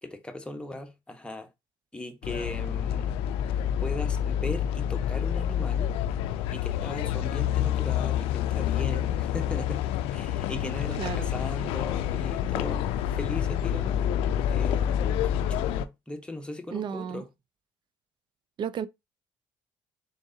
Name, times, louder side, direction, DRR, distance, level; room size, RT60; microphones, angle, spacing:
voice 1, 0.0-1.5 1.9-3.1 3.8-6.0 6.5-14.0 14.5-17.3, left 1 dB, 10° left, 1.1 m, -38 dB
sound 1, 2.2-15.9, left 10 dB, 80° left, 0.3 m, -28 dB
voice 2, 11.0-11.3 16.7-17.2 18.6-18.9, right 8 dB, 55° right, 0.5 m, -32 dB
3.8 x 3.5 x 2.7 m
supercardioid pair, 65°, 10 cm